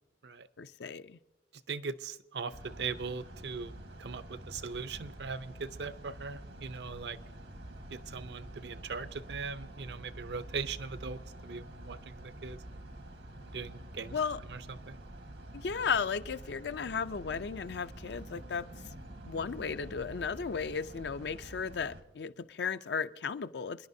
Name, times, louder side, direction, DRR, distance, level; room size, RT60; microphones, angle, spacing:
voice 1, 0.6-1.2 14.1-14.4 15.5-18.7 19.2-23.9, left 6 dB, 70° left, 12 dB, 0.5 m, -35 dB
voice 2, 1.7-3.7 4.0-7.2 7.9-12.6 13.5-14.2 14.5-15.0, right 5 dB, 70° right, 13 dB, 0.6 m, -40 dB
sound 1, 2.5-22.0, right 1 dB, 90° right, 1.6 m, -47 dB
28.5 x 10.5 x 2.7 m, 1.1 s
head